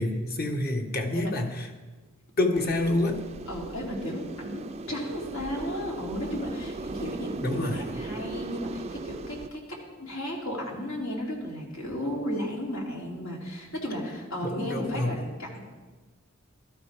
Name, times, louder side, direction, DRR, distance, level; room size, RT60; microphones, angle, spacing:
voice 1, 0.0-1.7 2.4-3.2 7.4-7.8 14.4-15.2, left 2 dB, 45° left, 4 dB, 1.4 m, -27 dB
voice 2, 1.1-1.5 3.5-15.6, equal, 80° left, -2 dB, 3.1 m, -34 dB
sound 1, 2.5-9.5, right 3 dB, 30° right, 0.4 m, -38 dB
16.0 x 13.0 x 3.5 m, 1.3 s
head